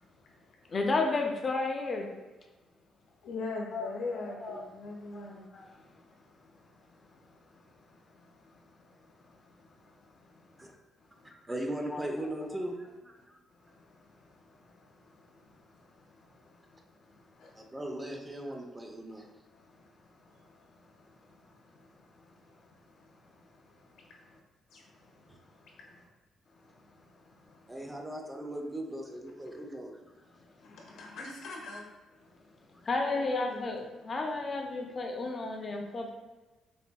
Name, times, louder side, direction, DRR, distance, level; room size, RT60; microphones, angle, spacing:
voice 1, 0.7-2.1 3.7-4.7 5.0-5.8 7.1-7.2 11.9-12.0 27.3-27.5 32.8-36.1, left 3 dB, 35° left, 1 dB, 0.5 m, -33 dB
voice 2, 3.2-5.5 17.4-17.5 24.7-24.8 30.6-31.9 33.1-33.7, left 3 dB, 80° left, -1 dB, 0.7 m, -40 dB
voice 3, 11.5-13.4 17.5-19.2 25.3-25.4 27.7-30.2 32.7-32.8, right 1 dB, 15° right, 1 dB, 0.5 m, -38 dB
4.2 x 2.6 x 2.2 m, 1.2 s
cardioid pair, 90°, 0 cm